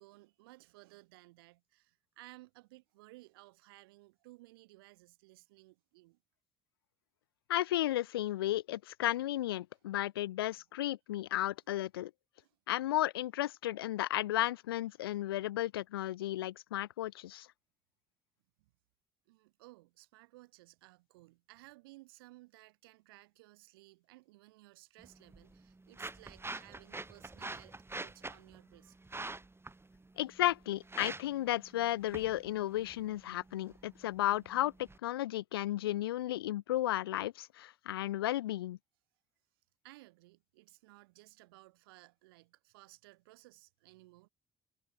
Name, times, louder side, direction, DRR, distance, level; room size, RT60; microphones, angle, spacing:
voice 1, 0.0-6.2 10.5-10.6 12.4-12.6 18.6-18.7 19.3-29.0 35.8-36.1 39.8-44.3, right 21 dB, 80° right, 5.7 m, -58 dB
voice 2, 7.5-12.1 12.7-17.5 30.2-34.7 35.0-38.8, left 14 dB, 85° left, 1.2 m, -34 dB
sound 1, 25.0-35.0, right 2 dB, 20° right, 4.9 m, -47 dB
hypercardioid pair, 50°, 12 cm